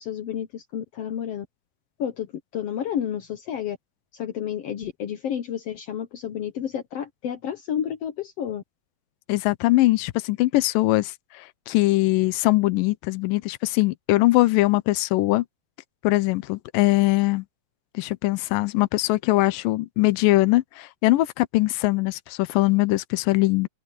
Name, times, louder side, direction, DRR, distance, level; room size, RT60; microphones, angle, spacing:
voice 1, 0.0-1.4 2.0-2.3 2.5-3.8 4.2-8.6, left 9 dB, 70° left, 1.5 m, -30 dB
voice 2, 9.3-15.4 16.0-17.5 17.9-23.7, left 19 dB, 85° left, 2.4 m, -21 dB
omnidirectional pair, 3.9 m